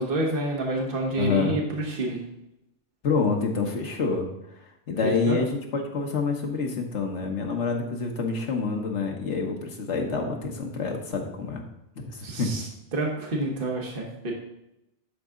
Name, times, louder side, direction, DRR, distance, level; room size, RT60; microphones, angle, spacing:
voice 1, 0.0-2.2 5.0-5.4 12.2-12.6 12.9-14.3, right 2 dB, 50° right, -1 dB, 1.5 m, -28 dB
voice 2, 1.2-1.6 3.0-4.3 4.9-11.6 12.0-12.6, left 4 dB, 70° left, 2 dB, 1.5 m, -27 dB
11.5 x 4.1 x 3.7 m, 0.87 s
omnidirectional pair, 1.2 m